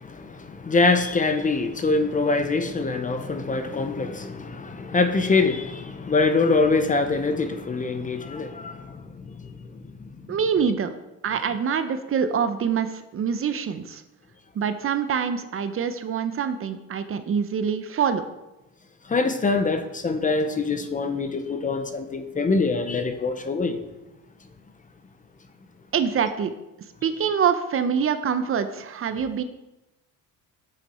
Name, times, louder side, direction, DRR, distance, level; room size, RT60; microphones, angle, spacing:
voice 1, 0.0-9.6 10.0-10.1 19.1-23.8, left 3 dB, 25° left, 0.8 m, -24 dB
voice 2, 10.3-10.9 11.2-14.0 14.5-18.2 25.9-26.5 27.0-29.4, right 7 dB, 40° right, 0.7 m, -25 dB
9.0 x 7.4 x 4.3 m
cardioid pair, 115°, 34 cm